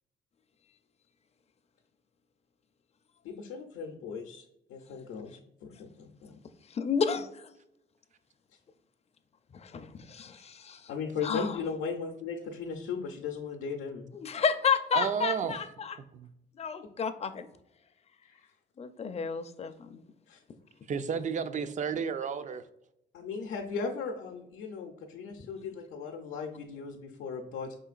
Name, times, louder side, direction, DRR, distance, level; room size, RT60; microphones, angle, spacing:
voice 1, 3.2-4.4 4.7-6.4 10.9-14.1 18.2-18.4 20.3-20.4 23.1-27.7, left 5 dB, 85° left, 1 dB, 0.6 m, -37 dB
voice 2, 6.7-7.3 9.6-10.8 11.2-11.6 14.2-16.0 16.6-17.5 18.8-20.0, left 6 dB, 35° left, 9 dB, 0.4 m, -31 dB
voice 3, 14.9-15.6 20.9-22.6, right 6 dB, 40° right, 12 dB, 0.4 m, -31 dB
5.0 x 3.8 x 2.4 m, 0.85 s
cardioid pair, 90°, 20 cm